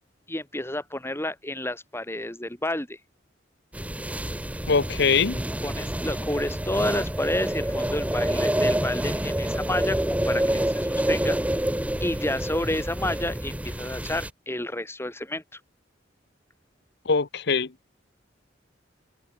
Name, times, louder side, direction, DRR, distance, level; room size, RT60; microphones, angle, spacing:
voice 1, 0.3-3.0 5.6-10.0 10.2-11.4 12.0-15.6, left 1 dB, 15° left, 4.1 m, -30 dB
sound 1, 3.7-14.3, right 1 dB, 10° right, 1.0 m, -27 dB
voice 2, 4.7-5.4 17.0-17.7, left 5 dB, 65° left, 1.0 m, -22 dB
open air
head